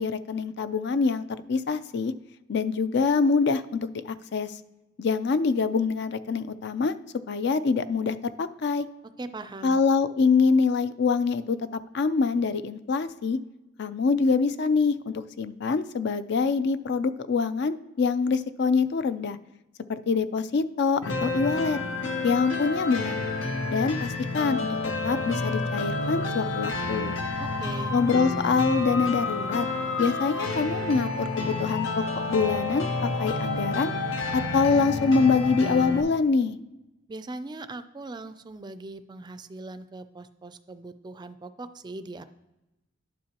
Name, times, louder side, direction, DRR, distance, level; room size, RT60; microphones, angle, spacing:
voice 1, 0.0-2.1 2.5-4.5 5.0-6.9 7.3-8.9 9.6-11.6 11.9-13.4 13.8-19.4 19.9-21.8 22.2-23.2 23.7-24.7 25.0-27.1 27.9-29.7 30.0-33.9 34.3-36.6, left 4 dB, 60° left, 12 dB, 0.4 m, -25 dB
voice 2, 9.2-9.8 27.4-27.9 37.1-42.2, right 2 dB, 25° right, 12 dB, 0.4 m, -40 dB
sound 1, 21.0-36.0, left 3 dB, 80° left, 0.8 m, -29 dB
11.5 x 5.3 x 2.9 m, 1.0 s
head